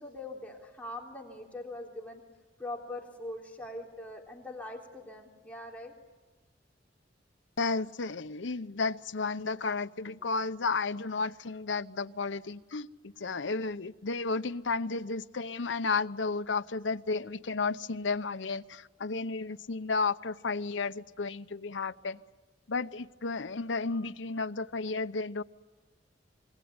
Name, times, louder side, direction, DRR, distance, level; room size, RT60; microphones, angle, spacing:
voice 1, 0.0-2.2 2.6-5.9, left 1 dB, 10° left, 3.6 m, -42 dB
voice 2, 7.6-22.2 22.7-25.4, left 4 dB, 85° left, 0.8 m, -33 dB
26.5 x 22.5 x 9.6 m
head